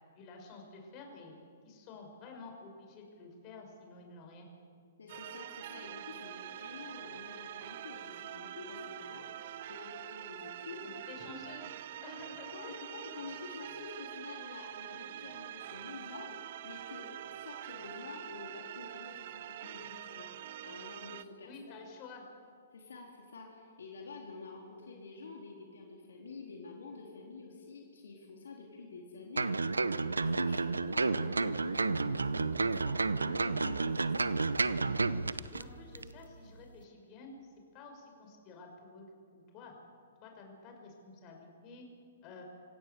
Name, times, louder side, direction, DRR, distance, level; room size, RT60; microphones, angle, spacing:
voice 1, 0.1-1.4 1.6-4.5 10.8-11.7 12.0-12.9 21.4-22.2 35.5-39.0 39.3-39.7 40.2-41.8 42.2-42.4, left 3 dB, 35° left, 2 dB, 5.6 m, -51 dB
voice 2, 5.0-9.2 9.7-10.8 11.3-11.4 12.5-16.3 16.6-20.3 20.6-21.8 22.7-29.5 30.0-34.3, left 4 dB, 70° left, 0 dB, 3.8 m, -48 dB
sound 1, 5.1-21.2, right 12 dB, 50° right, 0.8 m, -45 dB
sound 2, 29.4-35.6 35.9-36.1, right 3 dB, 85° right, 0.8 m, -31 dB
26.0 x 17.0 x 7.0 m, 2.3 s
figure-of-eight pair, 120°, 0 cm